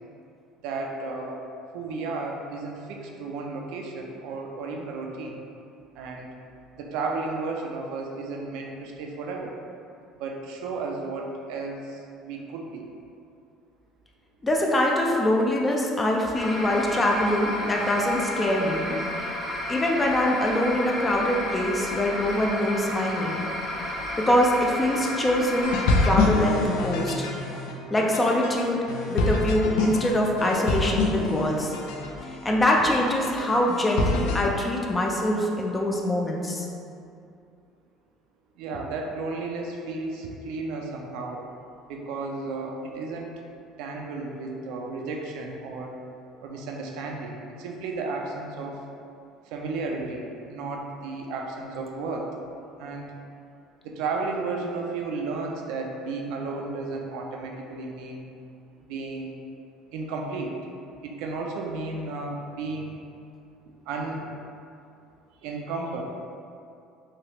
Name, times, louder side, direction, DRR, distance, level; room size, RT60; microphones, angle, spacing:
voice 1, 0.6-1.4 1.7-5.4 6.0-6.3 6.8-9.5 10.2-12.8 38.6-41.4 41.9-43.4 43.8-46.0 46.4-48.7 49.5-52.3 52.8-53.1 53.8-58.3 58.9-59.3 59.9-60.6 61.0-63.0 63.9-64.3 65.4-66.0, right 3 dB, 75° right, 1 dB, 0.4 m, -33 dB
voice 2, 14.4-19.0 19.7-23.5 24.2-27.3 27.9-31.7 32.4-36.7, left 1 dB, 20° left, -1 dB, 0.4 m, -24 dB
sound 1, 16.3-26.1, left 1 dB, 40° left, 1.1 m, -32 dB
sound 2, 25.6-34.4, left 3 dB, 80° left, 0.4 m, -27 dB
3.2 x 2.3 x 2.9 m, 2.5 s
supercardioid pair, 100°, 0 cm